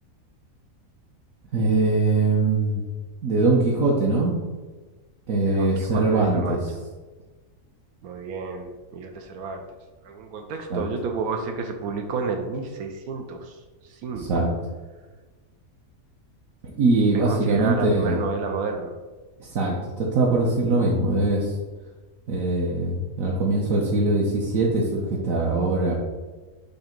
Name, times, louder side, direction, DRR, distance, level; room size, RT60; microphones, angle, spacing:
voice 1, 1.5-2.8 3.2-4.3 5.3-6.6 10.7-10.8 14.1-14.5 16.8-18.2 19.4-21.5 22.3-25.9, right 2 dB, 70° right, -3 dB, 1.3 m, -22 dB
voice 2, 5.4-6.6 8.0-9.7 10.0-14.5 17.1-18.9, right 4 dB, 90° right, 4 dB, 1.2 m, -31 dB
6.6 x 2.9 x 5.1 m, 1.3 s
omnidirectional pair, 1.5 m